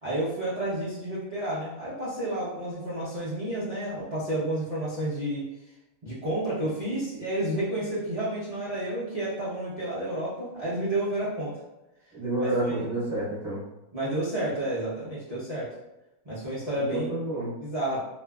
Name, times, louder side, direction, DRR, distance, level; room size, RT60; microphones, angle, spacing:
voice 1, 0.0-5.4 6.0-11.6 12.4-12.8 13.9-15.7 16.2-17.1 17.6-18.0, right 1 dB, 50° right, -10 dB, 0.4 m, -30 dB
voice 2, 12.1-13.6 16.9-17.6, right 2 dB, 15° right, -12 dB, 1.2 m, -29 dB
2.6 x 2.3 x 2.2 m, 0.94 s
omnidirectional pair, 1.6 m